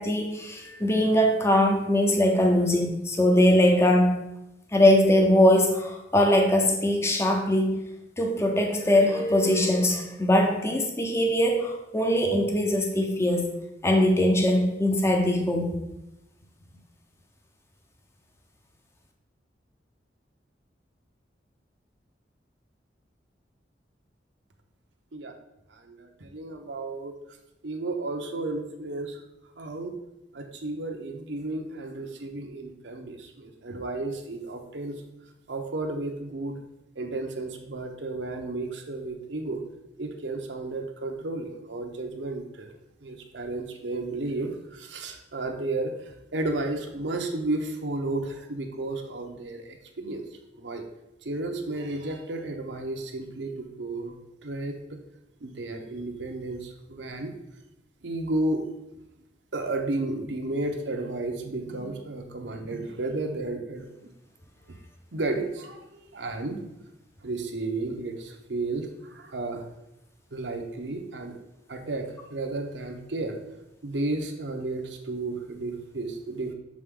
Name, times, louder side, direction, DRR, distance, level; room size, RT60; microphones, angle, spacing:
voice 1, 0.0-4.2 4.7-7.8 8.2-13.5 13.8-15.8, left 1 dB, 15° left, 2 dB, 0.7 m, -21 dB
voice 2, 25.7-27.1 27.6-29.2 29.6-29.9 30.3-35.0 35.5-36.6 37.0-39.6 40.0-42.7 43.0-50.8 51.2-54.2 54.4-55.0 55.4-57.3 58.0-58.6 59.5-64.1 65.1-66.6 67.2-69.7 70.3-71.4 71.7-73.4 73.8-76.5, right 2 dB, 80° right, 4 dB, 0.8 m, -33 dB
7.4 x 3.8 x 3.7 m, 0.92 s
head